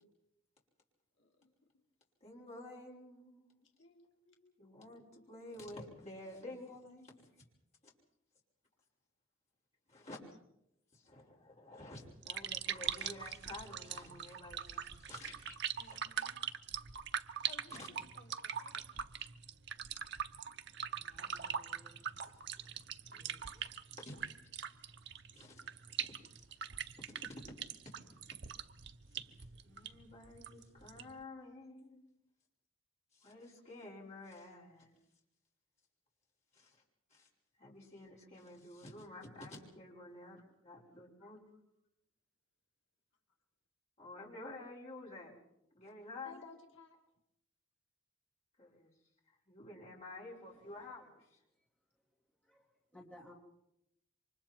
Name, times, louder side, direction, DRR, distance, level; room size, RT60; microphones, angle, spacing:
voice 1, 1.2-1.7 3.8-5.4 15.8-16.4 17.5-18.9 41.2-41.6 46.2-47.0, left 4 dB, 65° left, 1 dB, 2.4 m, -60 dB
voice 2, 2.2-3.7 4.6-7.3 7.8-7.9 9.9-10.2 10.9-16.0 17.8-17.9 20.8-22.8 23.1-23.6 24.0-24.1 25.3-25.6 26.0-26.1 27.1-27.3 29.6-32.0 33.1-35.0 36.5-36.8 37.1-37.3 37.6-41.4 44.0-45.4 45.7-46.4 48.6-48.9 49.3-51.4, left 2 dB, 30° left, -3 dB, 5.7 m, -51 dB
sound 1, 12.0-31.2, right 8 dB, 55° right, 0.8 m, -42 dB
voice 3, 50.3-50.9 52.5-52.6 52.9-53.3, left 1 dB, 5° left, -3 dB, 2.6 m, -57 dB
28.5 x 24.5 x 4.6 m, 0.81 s
head